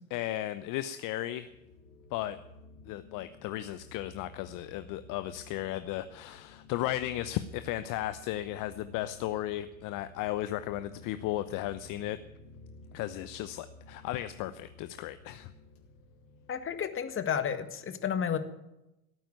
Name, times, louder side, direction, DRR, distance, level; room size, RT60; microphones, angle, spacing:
voice 1, 0.1-1.5 2.1-2.4 2.8-12.2 12.9-15.5, left 14 dB, 50° left, 12 dB, 0.9 m, -35 dB
sound 1, 1.4-17.6, left 2 dB, 80° left, 3.4 m, -53 dB
voice 2, 16.5-18.4, left 8 dB, 30° left, 9 dB, 1.8 m, -31 dB
17.0 x 9.1 x 9.3 m, 0.91 s
hypercardioid pair, 75°, 42 cm